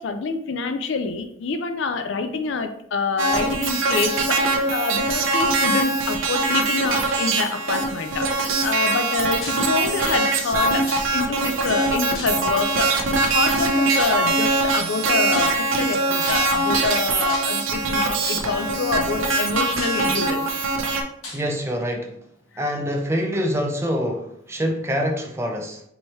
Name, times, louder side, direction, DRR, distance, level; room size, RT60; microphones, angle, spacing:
voice 1, 0.0-20.5, left 4 dB, 60° left, 8 dB, 0.4 m, -27 dB
sound 1, 3.2-21.0, right 2 dB, 70° right, 0.6 m, -22 dB
sound 2, 9.4-9.7 10.9-11.4 12.1-12.7 14.0-14.3 15.3-15.8 16.2-16.6 17.3-17.8 18.2-18.6 19.3-19.4 19.8-20.4 21.2-21.5, left 2 dB, 80° left, 1.2 m, -35 dB
voice 2, 21.3-22.2 22.6-25.8, equal, 10° right, 2 dB, 0.4 m, -25 dB
4.5 x 3.0 x 3.1 m, 0.71 s
head